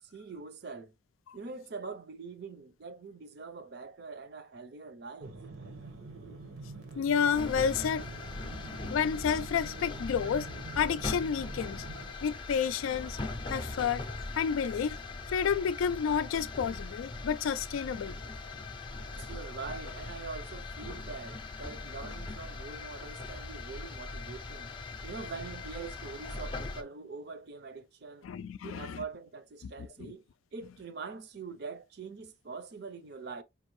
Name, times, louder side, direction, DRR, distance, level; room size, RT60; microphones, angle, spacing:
voice 1, 0.1-0.9 1.3-5.4 19.1-24.7 25.0-28.3 28.6-30.2 30.5-33.4, right 4 dB, 55° right, 0.5 m, -43 dB
sound 1, 5.2-12.1, right 3 dB, 85° right, 1.0 m, -46 dB
voice 2, 7.0-8.1 8.9-10.5 10.8-11.8 12.2-13.2 13.5-14.0 14.4-15.0 15.3-18.1 28.2-29.0 29.6-30.1, left 7 dB, 80° left, 0.3 m, -30 dB
sound 2, 7.3-26.8, left 3 dB, 25° left, 0.5 m, -40 dB
5.1 x 2.6 x 3.1 m
head